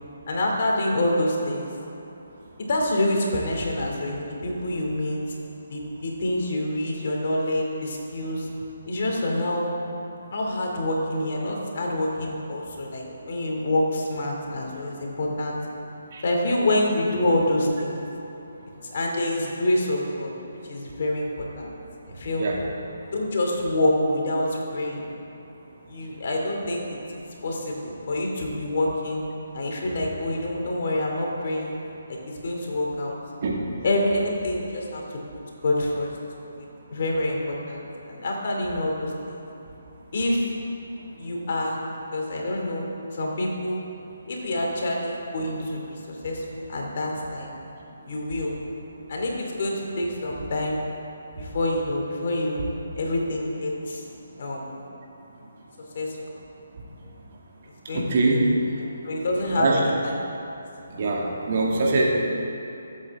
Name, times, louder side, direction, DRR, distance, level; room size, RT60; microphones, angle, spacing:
voice 1, 0.3-1.7 2.7-5.2 5.7-8.5 8.9-9.7 10.3-15.6 16.2-18.1 18.9-20.3 20.7-21.8 22.1-22.5 23.1-25.1 25.9-27.0 27.4-29.2 29.5-31.8 32.1-33.1 33.8-35.0 35.6-36.1 36.5-36.7 36.9-37.8 38.1-39.4 40.1-40.5 41.2-41.8 42.1-43.8 44.3-47.5 48.1-48.5 49.1-50.8 51.4-52.7 53.0-54.0 54.4-54.7 55.9-56.4 57.9-58.0 58.8-60.1, left 1 dB, 50° left, -1 dB, 2.6 m, -26 dB
voice 2, 57.9-58.4 59.6-59.8 60.9-62.1, right 3 dB, 45° right, -3 dB, 2.3 m, -23 dB
23.0 x 8.3 x 3.7 m, 2.8 s
figure-of-eight pair, 140°, 0 cm